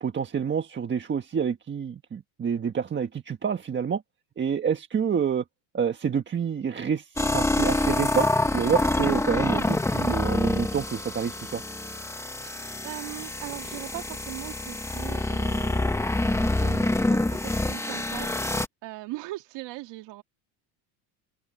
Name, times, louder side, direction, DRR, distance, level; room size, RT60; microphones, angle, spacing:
voice 1, 0.0-4.0 4.4-5.4 5.7-11.6, right 7 dB, 25° right, 1.5 m, -28 dB
sound 1, 7.2-18.7, left 2 dB, 5° left, 1.4 m, -26 dB
voice 2, 12.4-20.2, right 18 dB, 65° right, 2.8 m, -40 dB
open air
cardioid pair, 135°, 46 cm